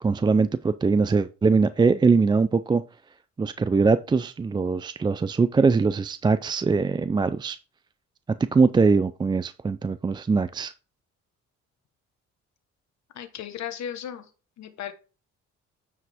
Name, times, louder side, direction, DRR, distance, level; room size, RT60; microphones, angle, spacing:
voice 1, 0.0-2.8 3.4-7.6 8.5-10.7, right 4 dB, 15° right, 0.3 m, -22 dB
voice 2, 13.1-14.3 14.6-14.9, left 9 dB, 70° left, 1.2 m, -35 dB
9.5 x 4.9 x 3.5 m
cardioid pair, 85°, 29 cm